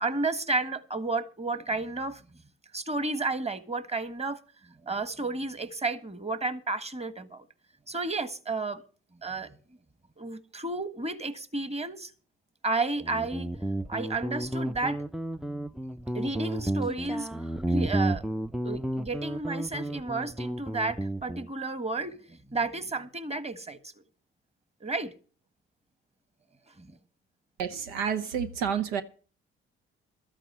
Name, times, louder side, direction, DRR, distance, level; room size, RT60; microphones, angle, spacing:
voice 1, 0.0-2.2 2.7-4.4 4.8-7.4 7.9-8.8 9.2-9.5 10.2-12.1 12.6-13.5 13.9-15.0 16.1-17.3 17.7-18.2 18.6-23.8 24.8-25.1 26.8-27.0, right 3 dB, 20° right, 1.6 m, -32 dB
Guitar, 13.0-21.5, right 1 dB, ahead, 0.5 m, -32 dB
voice 2, 27.6-29.0, right 7 dB, 75° right, 0.8 m, -29 dB
13.0 x 8.9 x 6.2 m
hypercardioid pair, 45°, 30 cm